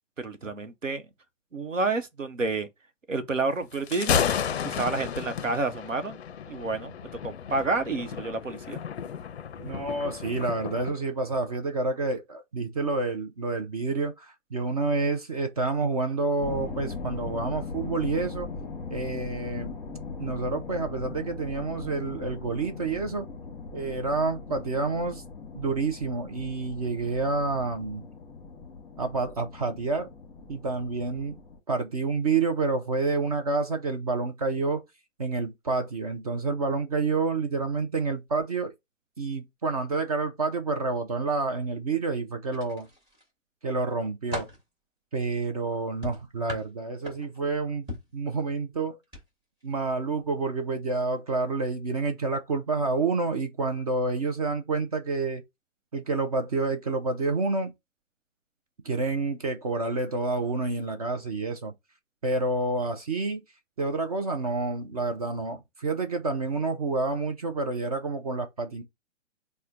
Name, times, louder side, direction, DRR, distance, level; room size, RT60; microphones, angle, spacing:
voice 1, 0.2-1.0 1.5-2.7 3.1-4.3 4.6-6.2 6.5-6.9 7.2-8.8, right 3 dB, 85° right, 0.8 m, -29 dB
Thunder, 3.7-11.0, left 8 dB, 60° left, 0.4 m, -32 dB
voice 2, 9.6-18.5 18.9-19.7 20.2-23.3 23.7-25.2 25.5-28.1 29.0-30.1 30.5-31.3 31.7-34.8 35.2-38.7 39.2-42.9 43.6-44.5 45.1-47.9 48.1-49.0 49.6-55.4 55.9-57.7 58.8-61.7 62.2-63.4 63.8-68.8, right 3 dB, 30° right, 0.4 m, -28 dB
sound 1, 16.4-31.6, left 4 dB, 10° left, 0.9 m, -40 dB
sound 2, 42.5-43.3 43.8-44.7 46.0-47.5 47.9-48.2 49.0-49.2 49.6-49.8, left 1 dB, 10° right, 1.1 m, -39 dB
4.2 x 2.1 x 3.6 m
figure-of-eight pair, 125°, 37 cm